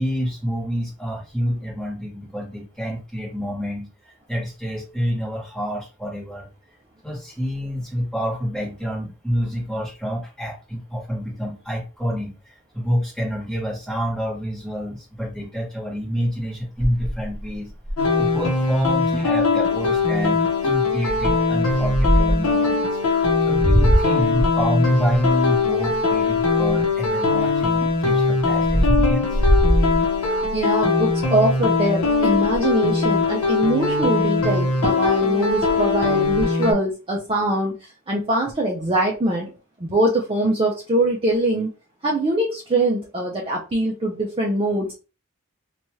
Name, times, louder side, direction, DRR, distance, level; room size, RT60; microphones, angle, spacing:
voice 1, 0.0-3.9 4.3-6.5 7.0-17.7 18.2-23.0 23.4-29.4, equal, 5° left, -4 dB, 1.1 m, -27 dB
sound 1, 16.8-18.3 18.8-18.9 19.1-19.4 19.9-20.2 21.1-22.5 23.2-27.1 27.6-30.6 31.1-31.4 31.6-31.7 32.0-32.7 34.4-34.5 34.8-35.2 35.5-36.5, equal, 30° left, 0.9 m, -22 dB
sound 2, 18.0-36.7, left 4 dB, 75° left, 0.8 m, -21 dB
voice 2, 30.5-37.7 38.1-39.5 39.8-41.7 42.0-44.9, right 1 dB, 25° right, -2 dB, 0.4 m, -22 dB
2.8 x 2.3 x 3.0 m, 0.33 s
head